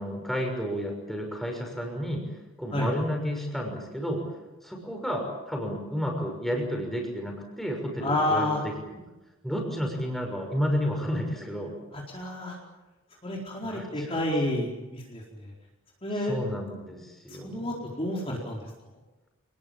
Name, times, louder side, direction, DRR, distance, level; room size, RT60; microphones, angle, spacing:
voice 1, 0.0-2.3 2.6-4.2 4.6-9.0 9.4-11.7 13.6-14.2 16.2-17.8, equal, ahead, 1 dB, 6.2 m, -31 dB
voice 2, 8.0-8.6 12.1-12.6 13.2-15.2 16.0-16.4 17.4-18.6, left 1 dB, 25° left, -2 dB, 4.5 m, -29 dB
28.5 x 20.0 x 9.0 m, 1.1 s
head